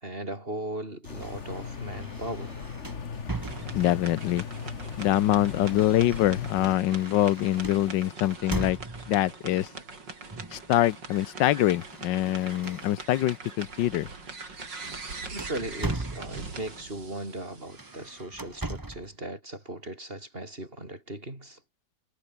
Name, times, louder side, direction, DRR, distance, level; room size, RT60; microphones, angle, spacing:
voice 1, 0.0-2.5 15.3-21.6, right 1 dB, 30° right, 5.8 m, -38 dB
sound 1, 1.0-6.8, left 5 dB, 45° left, 1.8 m, -38 dB
sound 2, 1.0-4.1 5.1-9.3 10.3-10.7 11.0-13.3 13.7-14.0 14.3-16.7 17.6-19.1, right 2 dB, 10° right, 1.4 m, -39 dB
sound 3, 3.4-18.2, right 4 dB, 85° right, 4.5 m, -43 dB
voice 2, 3.7-4.5 5.0-8.8 9.1-9.7 10.5-14.1, left 14 dB, 90° left, 1.4 m, -24 dB
omnidirectional pair, 1.9 m